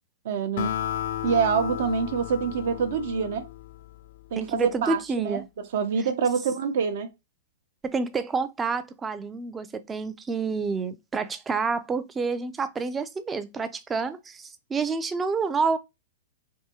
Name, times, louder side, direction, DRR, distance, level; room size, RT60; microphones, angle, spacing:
voice 1, 0.2-0.7 1.2-3.5 4.3-5.4 5.7-7.1, right 6 dB, 65° right, 0.6 m, -26 dB
Acoustic guitar, 0.6-4.2, left 10 dB, 60° left, 0.4 m, -33 dB
voice 2, 4.4-5.5 7.8-15.8, right 4 dB, 15° right, 0.4 m, -28 dB
3.5 x 2.6 x 2.8 m
hypercardioid pair, 140°, 0 cm